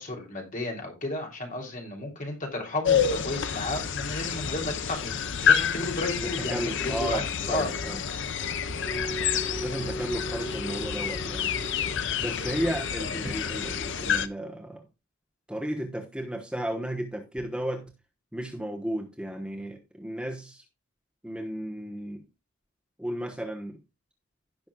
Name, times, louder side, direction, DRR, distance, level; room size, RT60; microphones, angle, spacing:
voice 1, 0.0-7.2 7.5-7.7 8.9-9.0 13.2-13.3, left 2 dB, 40° left, 3.0 m, -33 dB
sound 1, 2.8-14.3, left 7 dB, 60° left, 0.7 m, -29 dB
voice 2, 6.2-8.0 9.5-11.6 12.2-14.8 15.5-17.9 18.3-20.6 21.2-22.2 23.0-23.8, right 1 dB, 5° right, 1.0 m, -34 dB
Telephone, 6.4-6.9 7.4-7.9 8.4-8.9 9.4-9.9 10.4-10.9 11.4-11.9 12.4-12.9 13.4-13.9, equal, 25° right, 2.7 m, -45 dB
sound 2, 8.8-13.0, right 1 dB, 15° left, 2.6 m, -39 dB
16.5 x 6.2 x 2.3 m
head